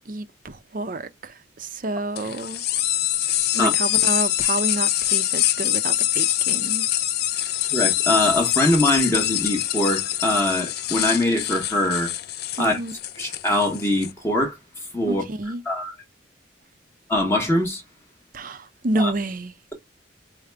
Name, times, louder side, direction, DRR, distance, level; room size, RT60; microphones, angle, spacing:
voice 1, 0.1-2.6 3.5-6.9 12.6-12.9 15.1-15.6 18.3-19.5, right 2 dB, 45° right, 0.6 m, -29 dB
sound 1, 2.2-14.1, left 13 dB, 55° left, 0.4 m, -24 dB
voice 2, 7.7-12.1 12.6-12.7 13.2-14.6 14.9-15.2 15.7-15.9 17.1-17.8 19.0-19.1, left 1 dB, 15° left, 1.0 m, -22 dB
5.0 x 2.1 x 3.3 m
head